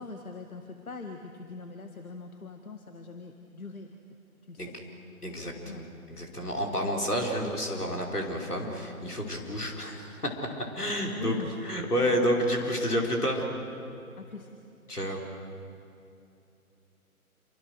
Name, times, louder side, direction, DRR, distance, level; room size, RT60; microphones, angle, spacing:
voice 1, 0.0-3.9 4.5-4.7 5.7-5.8 6.8-7.1 11.2-11.6 14.2-14.5, left 3 dB, 70° left, 5 dB, 1.9 m, -41 dB
voice 2, 5.2-10.3 10.7-11.3 11.6-13.5 14.9-15.2, equal, 85° left, 0 dB, 5.2 m, -30 dB
27.5 x 25.0 x 6.5 m, 2.7 s
figure-of-eight pair, 140°, 44 cm